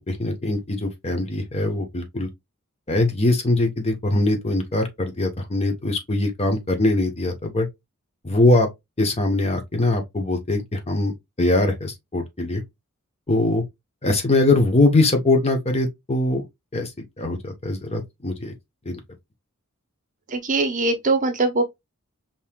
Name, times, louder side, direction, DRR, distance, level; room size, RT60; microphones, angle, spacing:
voice 1, 0.1-2.3 2.9-7.7 8.2-8.7 9.0-12.6 13.3-13.6 14.0-16.5 16.7-16.9 17.2-18.5 18.9-19.0, left 2 dB, 30° left, 0.9 m, -22 dB
voice 2, 20.3-21.6, right 3 dB, 35° right, 0.8 m, -21 dB
5.4 x 2.9 x 2.2 m
head